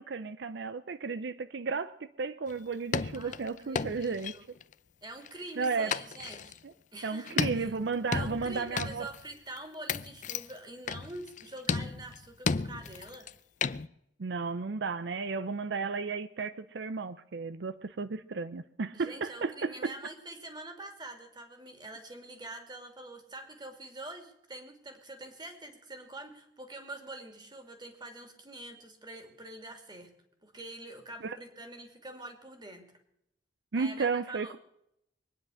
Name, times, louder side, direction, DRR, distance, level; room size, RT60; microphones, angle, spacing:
voice 1, 0.0-4.4 5.6-5.9 7.0-9.1 14.2-19.9 31.2-31.4 33.7-34.6, right 4 dB, 70° right, 0.5 m, -33 dB
sound 1, 2.5-2.6 2.9-4.7 5.3-6.6 7.3-9.2 9.6-9.7 9.9-10.5 10.9-11.4 11.7-13.3 13.6-13.9, left 5 dB, 45° left, 0.5 m, -33 dB
voice 2, 3.2-4.4 5.0-6.6 6.9-7.7 8.1-13.3 18.9-30.1 30.4-32.8 33.8-34.6, right 2 dB, 25° right, 2.6 m, -45 dB
22.5 x 9.9 x 6.3 m
head